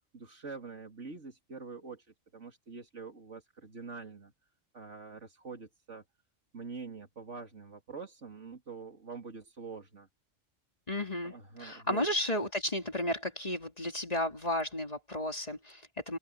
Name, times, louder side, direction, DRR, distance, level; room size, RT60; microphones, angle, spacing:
voice 1, 0.1-2.0 2.3-4.3 4.7-6.0 6.5-10.1 11.2-12.1, right 4 dB, 65° right, 3.2 m, -45 dB
voice 2, 10.9-16.2, left 1 dB, 30° left, 3.1 m, -33 dB
omnidirectional pair, 1.4 m